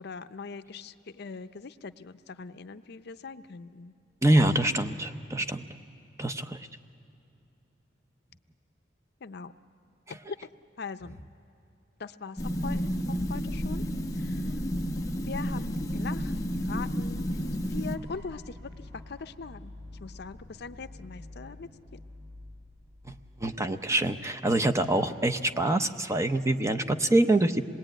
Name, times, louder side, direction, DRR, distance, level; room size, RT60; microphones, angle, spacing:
voice 1, 0.0-3.9 9.2-9.5 10.1-10.4 10.8-11.2 12.0-12.9 13.3-13.8 14.1-14.5 15.3-19.7 20.0-22.0, left 4 dB, 60° left, 11 dB, 0.6 m, -41 dB
voice 2, 4.2-5.6 6.2-6.7 23.1-23.2 23.4-27.6, right 1 dB, 15° right, 8 dB, 0.7 m, -25 dB
sound 1, 12.4-18.0, equal, 20° left, 0.9 m, -31 dB
sound 2, 17.9-23.8, left 2 dB, 65° right, 4.4 m, -48 dB
26.5 x 20.5 x 9.0 m, 2.6 s
head